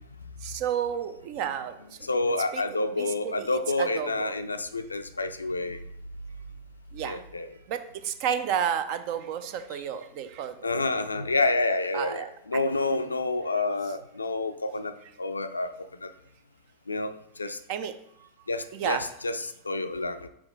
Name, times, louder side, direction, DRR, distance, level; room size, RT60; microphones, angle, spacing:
voice 1, 0.4-1.8 2.5-2.6 2.9-4.3 6.9-7.2 7.7-10.6 11.9-12.3 12.5-12.6 12.9-13.1 17.7-17.9 18.2-18.3 18.7-19.0, right 9 dB, 45° right, 11 dB, 0.5 m, -31 dB
voice 2, 2.0-5.8 7.0-7.5 10.6-14.9 15.2-15.7 16.0-16.1 16.9-17.1 17.4-17.6 18.5-20.3, left 2 dB, 80° left, 10 dB, 0.4 m, -28 dB
6.1 x 4.7 x 3.7 m, 0.74 s
figure-of-eight pair, 90°, 0 cm